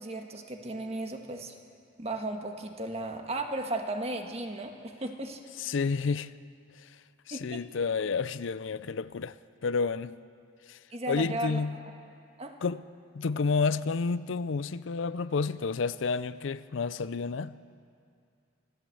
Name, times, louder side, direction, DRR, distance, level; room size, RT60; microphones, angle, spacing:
voice 1, 0.0-1.6 2.0-5.4 7.3-7.6 10.9-11.9 12.4-12.5, right 2 dB, 30° right, 1.5 m, -35 dB
voice 2, 5.6-6.3 7.3-9.3 9.6-10.1 10.7-10.8 11.1-11.8 12.6-12.8 13.1-17.5, left 4 dB, 70° left, 0.5 m, -30 dB
25.0 x 14.5 x 7.8 m
head